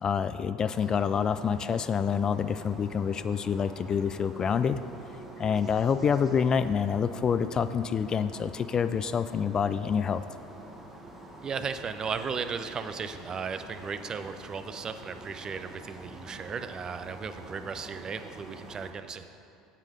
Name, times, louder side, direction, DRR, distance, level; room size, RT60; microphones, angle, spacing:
voice 1, 0.0-4.8 5.4-10.2, left 7 dB, 35° left, 12 dB, 0.3 m, -27 dB
sound 1, 0.7-18.9, right 1 dB, 20° right, 1.5 m, -47 dB
voice 2, 11.4-19.3, right 5 dB, 35° right, 10 dB, 0.5 m, -36 dB
8.5 x 7.3 x 5.0 m, 2.5 s
hypercardioid pair, 75°, 2 cm